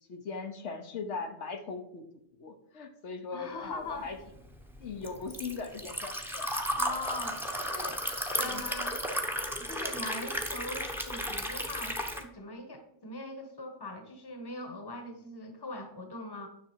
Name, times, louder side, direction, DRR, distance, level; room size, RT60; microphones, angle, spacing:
voice 1, 0.1-2.0 2.4-4.2 4.8-6.5 8.4-8.6, left 4 dB, 75° left, 5 dB, 1.2 m, -39 dB
voice 2, 3.3-4.1 6.7-8.0 8.4-9.0 9.5-16.5, left 2 dB, 20° left, 6 dB, 1.1 m, -41 dB
Liquid, 4.0-12.2, equal, ahead, 0.9 m, -34 dB
9.9 x 6.2 x 4.6 m, 0.77 s
omnidirectional pair, 1.2 m